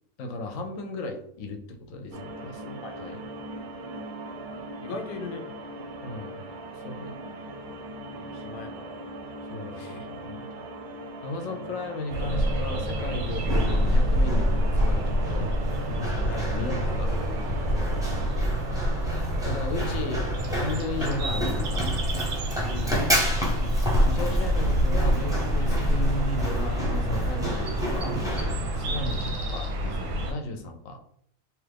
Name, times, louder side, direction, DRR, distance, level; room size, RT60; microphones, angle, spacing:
voice 1, 0.2-3.3 6.0-6.5 6.8-7.2 9.5-10.7 11.2-15.5 15.9-17.1 19.4-21.9 24.0-31.0, left 2 dB, 90° left, 5 dB, 1.0 m, -35 dB
sound 1, 2.1-18.3, right 1 dB, 65° right, 0.6 m, -40 dB
voice 2, 4.8-5.4 8.1-9.0 9.7-10.1 11.6-11.7 16.3-16.5 22.7-23.0, left 3 dB, 60° left, 4 dB, 0.6 m, -39 dB
sound 2, 12.1-30.3, equal, 85° right, 1.0 m, -27 dB
Run, 13.2-29.3, equal, 5° right, 0.4 m, -32 dB
3.0 x 2.3 x 3.4 m, 0.67 s
omnidirectional pair, 1.3 m